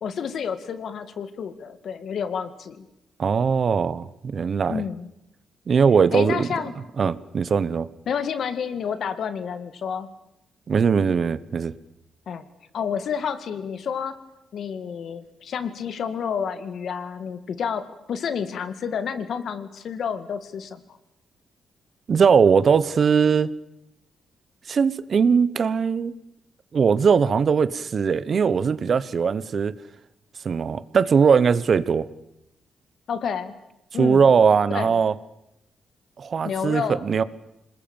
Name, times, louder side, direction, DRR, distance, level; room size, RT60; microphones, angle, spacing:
voice 1, 0.0-2.8 4.7-5.1 6.1-6.7 8.1-10.1 12.3-12.4 12.7-14.2 14.5-20.8 33.1-33.6 33.9-34.2 34.7-34.9 36.4-37.0, left 7 dB, 65° left, 11 dB, 2.2 m, -29 dB
voice 2, 3.2-4.8 5.7-6.5 7.0-7.9 10.7-11.7 22.1-23.5 24.7-26.1 26.7-29.7 30.4-32.1 34.0-35.1 36.2-37.2, right 6 dB, 45° right, 17 dB, 1.1 m, -20 dB
27.0 x 20.5 x 9.0 m, 0.84 s
cardioid pair, 110°, 0 cm